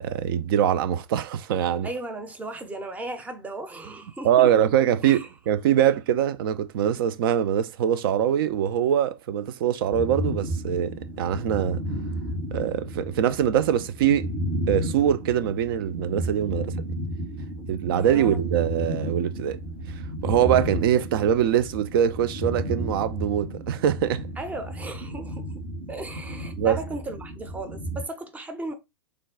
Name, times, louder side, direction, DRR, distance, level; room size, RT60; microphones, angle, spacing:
voice 1, 0.0-1.9 4.2-11.8 12.5-14.3 14.7-16.7 17.7-19.6 20.2-24.2 26.6-26.8, right 10 dB, 55° right, 0.4 m, -23 dB
voice 2, 1.8-4.7 5.0-5.3 17.6-17.7 18.0-18.4 24.4-28.7, right 2 dB, 10° right, 0.6 m, -36 dB
sound 1, 9.9-28.0, right 1 dB, 70° right, 2.0 m, -33 dB
3.4 x 2.2 x 3.6 m
figure-of-eight pair, 100°, 14 cm